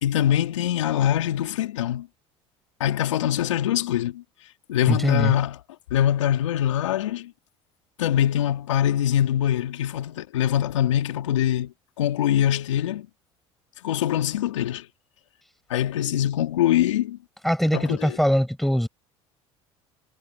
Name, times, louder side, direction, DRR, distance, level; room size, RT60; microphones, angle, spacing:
voice 1, 0.0-2.1 2.8-4.2 4.7-5.6 5.9-7.3 8.0-11.7 12.0-13.1 13.8-14.9 15.7-17.2 17.7-18.2, left 11 dB, 85° left, 3.0 m, -23 dB
voice 2, 4.9-5.3 17.4-18.9, equal, ahead, 6.9 m, -22 dB
hypercardioid pair, 65°, 15 cm